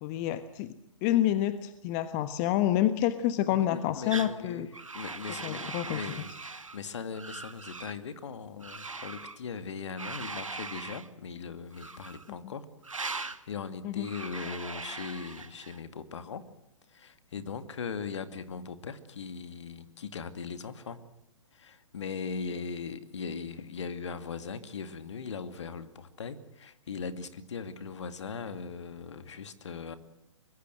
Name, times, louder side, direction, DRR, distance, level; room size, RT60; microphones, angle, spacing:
voice 1, 0.0-0.7 1.0-4.7 5.4-6.0 12.4-12.5 13.8-14.1, left 12 dB, 35° left, 12 dB, 1.3 m, -28 dB
voice 2, 3.5-4.7 4.9-12.7 13.0-16.4 16.9-21.0 21.5-30.0, left 5 dB, 65° left, 11 dB, 2.4 m, -39 dB
sound 1, 4.1-4.4 4.7-6.8 7.1-8.0 8.6-9.4 10.0-11.1 11.7-12.3 12.8-13.4 14.0-15.8, right 3 dB, 85° right, 1.6 m, -40 dB
24.5 x 21.5 x 7.8 m, 0.79 s
figure-of-eight pair, 125°, 16 cm